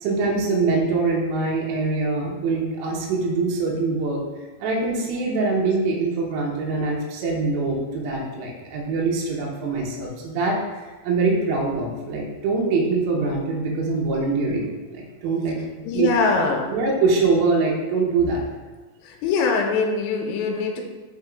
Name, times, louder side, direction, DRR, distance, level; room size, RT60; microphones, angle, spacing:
voice 1, 0.0-4.2 4.6-10.6 11.0-16.1 16.7-18.4, right 3 dB, 80° right, -2 dB, 3.1 m, -23 dB
voice 2, 15.8-16.7 19.0-20.8, left 4 dB, 85° left, 3 dB, 2.9 m, -23 dB
5.8 x 5.1 x 3.5 m, 1.2 s
omnidirectional pair, 5.2 m